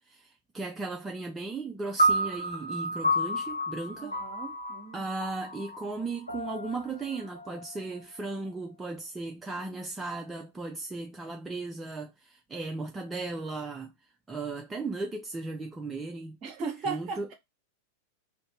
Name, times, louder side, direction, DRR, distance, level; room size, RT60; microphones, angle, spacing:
voice 1, 0.1-4.2 4.9-13.9 14.3-16.4 16.9-17.3, right 3 dB, 15° right, 0.4 m, -36 dB
sound 1, 2.0-8.4, right 1 dB, 85° left, 0.7 m, -31 dB
voice 2, 4.0-5.0 16.4-17.3, right 4 dB, 40° right, 0.9 m, -37 dB
2.6 x 2.5 x 3.5 m
figure-of-eight pair, 90°, 0 cm